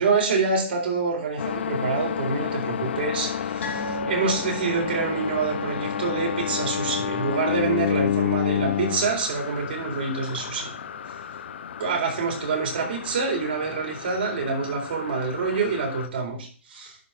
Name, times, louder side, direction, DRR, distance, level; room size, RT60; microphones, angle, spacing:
voice 1, 0.0-10.7 11.8-17.0, right 4 dB, 55° right, 0 dB, 4.1 m, -26 dB
sound 1, 1.4-16.1, left 9 dB, 60° left, 0.7 m, -30 dB
sound 2, 3.6-10.4 10.7-10.9 11.3-11.4, left 1 dB, 75° left, 3.4 m, -38 dB
11.0 x 4.5 x 5.7 m, 0.42 s
hypercardioid pair, 170°, 7 cm